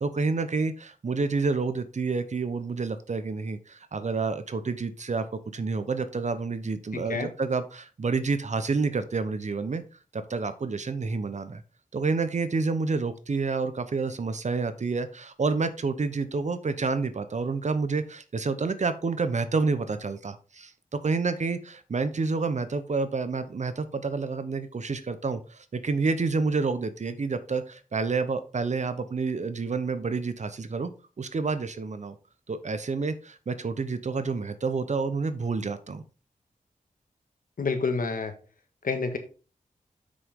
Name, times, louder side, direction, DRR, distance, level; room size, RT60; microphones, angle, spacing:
voice 1, 0.0-5.3 5.5-9.8 10.1-11.6 11.9-20.7 21.0-30.9 31.2-32.1 32.5-36.0, right 4 dB, 55° right, 11 dB, 0.9 m, -29 dB
voice 2, 6.9-7.3 37.6-38.3 38.8-39.2, left 4 dB, 75° left, 6 dB, 1.6 m, -28 dB
7.8 x 6.3 x 3.7 m, 0.34 s
wide cardioid pair, 65°, 14 cm